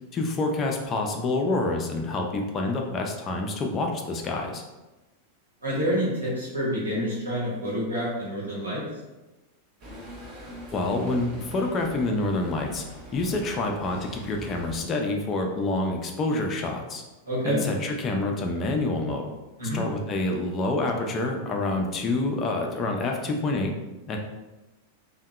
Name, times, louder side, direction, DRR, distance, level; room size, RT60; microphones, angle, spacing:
voice 1, 0.1-4.6 10.7-12.8 13.1-17.0 17.4-19.3 19.7-23.7 24.1-24.2, left 2 dB, 25° left, 2 dB, 0.4 m, -27 dB
voice 2, 5.6-8.8 17.3-17.6 19.6-19.8, equal, 75° right, -8 dB, 0.9 m, -28 dB
sound 1, 9.8-14.8, equal, 35° right, 0.7 m, -43 dB
2.6 x 2.1 x 2.2 m, 1.1 s
figure-of-eight pair, 90°, 0 cm